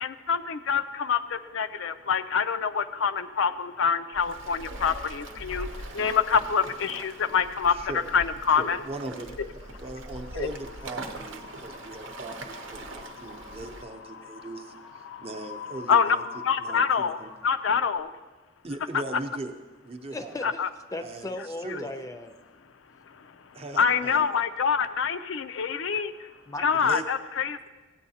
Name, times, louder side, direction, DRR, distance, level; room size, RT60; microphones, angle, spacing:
voice 1, 0.0-1.2 1.5-5.7 5.9-7.7 8.1-8.8 10.4-10.5 15.9-16.2 16.5-17.2 17.4-18.1 20.4-20.7 23.8-26.1 26.6-27.6, left 6 dB, 70° left, 11 dB, 0.5 m, -25 dB
Waves surf, 4.1-13.8, right 2 dB, 65° right, 0.8 m, -41 dB
voice 2, 7.7-8.1 8.5-16.2 16.6-17.3 18.6-19.6 19.8-20.3 21.0-21.9 23.5-24.4 26.8-27.0, right 2 dB, 30° right, 3 dB, 0.7 m, -39 dB
Wind, 9.9-18.0, left 5 dB, 85° left, 0.9 m, -44 dB
voice 3, 20.1-22.3 26.5-26.9, left 2 dB, 15° left, 8 dB, 0.5 m, -37 dB
16.0 x 9.2 x 2.8 m, 1.3 s
head